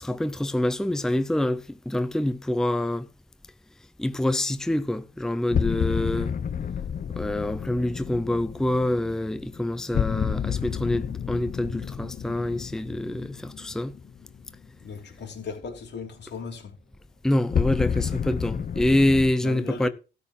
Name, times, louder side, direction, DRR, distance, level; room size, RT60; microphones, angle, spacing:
voice 1, 0.0-3.1 4.0-6.4 7.2-14.0 17.2-19.9, left 1 dB, 5° left, 0.6 m, -26 dB
sound 1, 5.5-14.5 17.5-19.3, left 7 dB, 45° left, 0.8 m, -30 dB
voice 2, 14.8-16.8 19.4-19.9, left 5 dB, 60° left, 2.9 m, -37 dB
13.0 x 4.4 x 7.1 m
cardioid pair, 90°, 20 cm